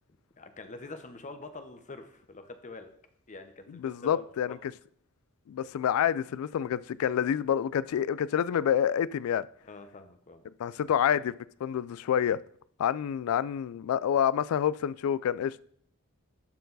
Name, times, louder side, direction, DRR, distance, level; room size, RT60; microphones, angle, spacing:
voice 1, 0.4-2.9 3.3-4.6 9.6-10.4, left 3 dB, 35° left, 0.9 m, -45 dB
voice 2, 3.7-4.7 5.5-9.4 10.6-11.3 11.6-12.4 12.8-15.6, left 9 dB, 80° left, 0.3 m, -28 dB
12.5 x 4.5 x 4.0 m
head